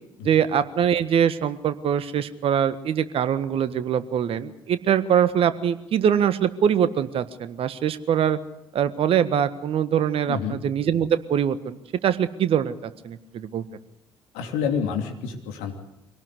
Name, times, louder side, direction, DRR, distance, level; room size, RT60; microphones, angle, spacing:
voice 1, 0.2-8.4 8.7-11.8 12.0-13.6, right 8 dB, 55° right, 13 dB, 1.5 m, -23 dB
voice 2, 10.3-10.6 14.3-15.7, left 7 dB, 70° left, 3 dB, 2.9 m, -28 dB
24.5 x 18.0 x 8.3 m, 0.90 s
figure-of-eight pair, 45°, 12 cm